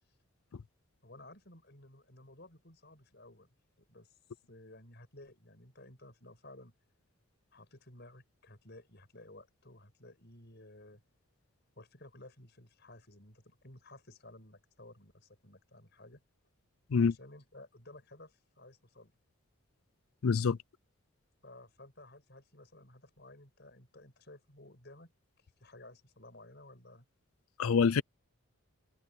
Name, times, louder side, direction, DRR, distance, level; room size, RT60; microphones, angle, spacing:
voice 1, 1.0-3.5 3.8-4.2 4.5-6.7 7.5-11.0 11.8-16.2 16.9-19.1 21.4-25.1 25.4-27.1, left 1 dB, 50° left, 6.7 m, -55 dB
voice 2, 20.2-20.6 27.6-28.0, left 5 dB, 80° left, 0.5 m, -26 dB
head